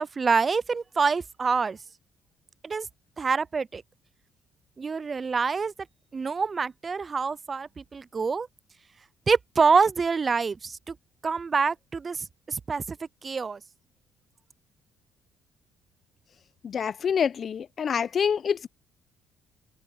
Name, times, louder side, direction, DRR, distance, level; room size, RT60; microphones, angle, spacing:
voice 1, 0.0-1.8 2.6-2.9 3.2-3.8 4.8-5.7 6.1-8.5 9.3-11.0 11.2-13.0 13.2-13.6, right 5 dB, 35° right, 0.5 m, -26 dB
voice 2, 16.6-18.7, left 7 dB, 50° left, 0.8 m, -26 dB
supercardioid pair, 65°, 0 cm